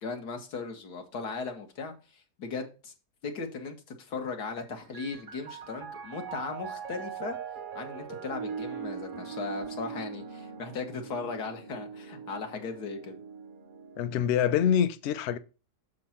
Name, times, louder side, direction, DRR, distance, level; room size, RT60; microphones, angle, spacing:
voice 1, 0.0-2.9 3.2-7.4 7.7-13.2, left 4 dB, 85° left, 1.8 m, -37 dB
Piano, 4.4-14.0, right 6 dB, 50° right, 0.6 m, -41 dB
voice 2, 14.0-15.4, left 9 dB, 65° left, 0.6 m, -25 dB
6.4 x 3.8 x 5.7 m
omnidirectional pair, 1.7 m